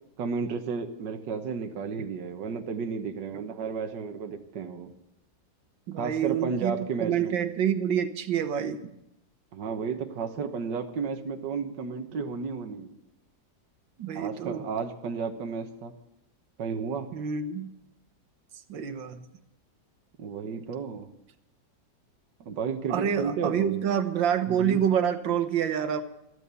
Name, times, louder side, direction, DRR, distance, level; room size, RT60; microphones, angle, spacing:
voice 1, 0.2-4.9 6.0-7.3 9.5-13.0 14.1-15.9 16.6-17.1 20.2-21.1 22.4-23.8 24.5-24.8, right 5 dB, 70° right, 6 dB, 1.8 m, -32 dB
voice 2, 5.9-8.8 14.0-14.6 17.1-17.7 18.7-19.2 22.9-26.0, right 8 dB, 85° right, 8 dB, 1.9 m, -27 dB
14.0 x 13.0 x 6.9 m, 0.87 s
omnidirectional pair, 2.0 m